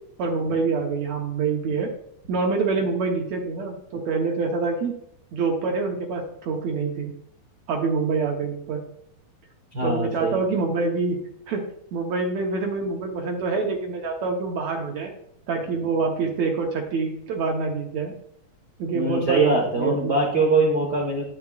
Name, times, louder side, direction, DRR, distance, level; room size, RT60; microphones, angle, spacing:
voice 1, 0.2-1.9 2.3-5.0 5.3-7.1 7.7-8.8 9.8-11.2 11.5-15.1 15.5-18.1 18.8-20.1, right 4 dB, 65° right, 1 dB, 1.8 m, -26 dB
voice 2, 9.7-10.4 18.9-21.2, right 3 dB, 85° right, -1 dB, 0.9 m, -22 dB
10.0 x 9.4 x 2.4 m, 0.74 s
omnidirectional pair, 4.2 m